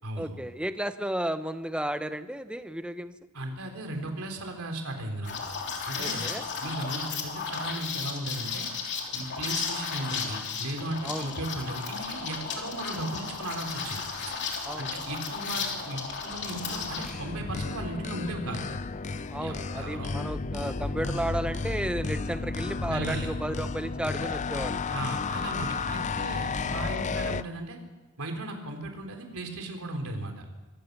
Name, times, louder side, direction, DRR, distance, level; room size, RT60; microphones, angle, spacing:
voice 1, 0.2-3.2 6.0-6.4 11.0-11.3 12.5-12.6 14.6-14.9 19.3-24.8, right 1 dB, 5° right, 10 dB, 0.9 m, -33 dB
voice 2, 3.3-5.3 5.9-6.3 6.6-8.7 9.1-14.3 14.8-18.8 19.4-20.1 22.9-23.3 24.9-27.8 28.2-30.5, right 1 dB, 70° right, 4 dB, 3.9 m, -36 dB
Liquid, 5.2-17.1, left 5 dB, 55° left, 3.3 m, -34 dB
sound 1, 16.3-27.4, left 4 dB, 35° left, 0.5 m, -33 dB
25.5 x 16.0 x 6.8 m, 1.2 s
head